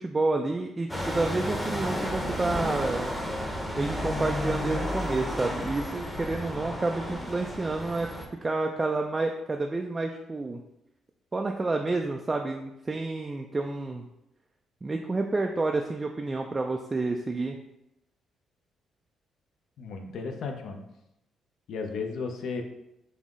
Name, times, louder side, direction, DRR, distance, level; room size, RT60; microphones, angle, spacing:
voice 1, 0.0-3.1 3.8-8.1 8.4-10.6 11.3-14.1 14.8-17.6, right 3 dB, 25° right, 3 dB, 0.3 m, -29 dB
sound 1, 0.9-8.3, left 1 dB, 5° left, 0.8 m, -32 dB
voice 2, 19.8-20.8 21.7-22.6, left 4 dB, 70° left, 4 dB, 0.6 m, -34 dB
5.4 x 2.0 x 3.6 m, 0.86 s
cardioid pair, 90°, 0 cm